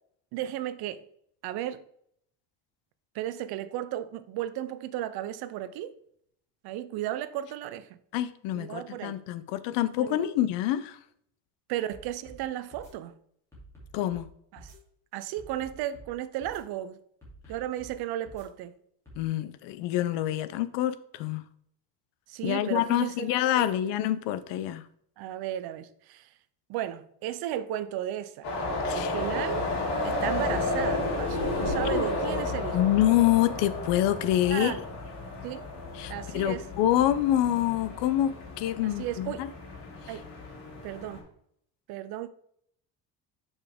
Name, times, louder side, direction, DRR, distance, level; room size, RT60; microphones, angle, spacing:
voice 1, 0.3-1.0 1.4-1.8 3.1-5.9 6.6-8.0 8.5-9.2 10.0-10.2 11.7-13.2 14.5-14.7 15.1-17.0 17.5-18.8 22.3-23.3 23.5-24.0 25.2-26.3 26.7-28.5 28.9-29.7 30.0-32.8 34.5-34.8 35.4-35.7 36.1-36.7 38.8-39.5 40.1-40.2 40.8-41.2 41.9-42.3, right 12 dB, 65° right, 0.6 m, -34 dB
voice 2, 8.1-11.0 13.9-14.3 19.2-21.4 22.4-24.8 28.8-29.1 31.8-32.0 32.7-34.7 35.9-39.5 40.1-40.2, left 13 dB, 85° left, 0.7 m, -26 dB
sound 1, 11.9-12.4 12.7-12.9 13.5-14.3 14.6-14.8 15.4-16.1 16.4-16.6 17.2-17.9 18.2-18.5 19.1-19.2, right 1 dB, 5° left, 2.8 m, -49 dB
sound 2, 28.4-41.2, left 2 dB, 65° left, 2.9 m, -32 dB
7.0 x 5.4 x 3.5 m
cardioid pair, 175°, 42 cm